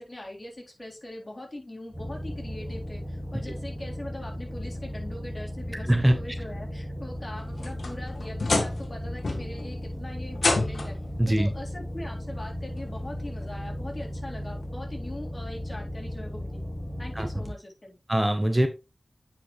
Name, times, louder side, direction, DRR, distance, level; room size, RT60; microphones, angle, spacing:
voice 1, 0.0-11.0 11.2-16.6 17.0-18.0, left 1 dB, 35° left, -1 dB, 3.5 m, -41 dB
sound 1, 1.9-17.5, equal, 20° left, 2.8 m, -36 dB
sound 2, 7.3-8.9 9.2-9.7 10.4-11.1 12.2-12.3 13.0-13.1 14.6-14.7, left 3 dB, 85° left, 1.4 m, -28 dB
voice 2, 11.2-11.5 17.2-17.3 18.1-18.7, right 1 dB, 20° right, 7 dB, 1.0 m, -22 dB
9.1 x 5.4 x 3.1 m, 0.27 s
wide cardioid pair, 50°, 0 cm